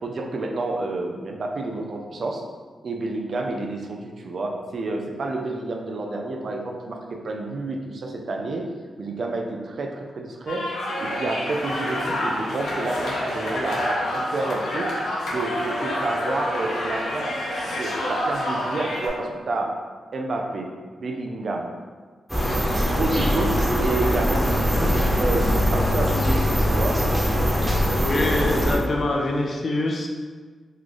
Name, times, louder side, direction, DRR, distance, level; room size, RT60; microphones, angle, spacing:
voice 1, 0.0-2.4 2.8-8.7 9.0-10.7 11.0-17.3 17.8-19.7 20.1-20.7 21.0-21.7 22.9-23.6 23.8-27.0, right 2 dB, 60° right, 1 dB, 0.5 m, -29 dB
sound 1, 10.5-19.1, left 1 dB, 85° left, 0.8 m, -28 dB
sound 2, 22.3-28.8, equal, 10° right, 1.1 m, -22 dB
voice 2, 27.9-30.1, left 2 dB, 50° left, 1 dB, 0.5 m, -24 dB
3.1 x 2.4 x 3.9 m, 1.5 s
cardioid pair, 70°, 0 cm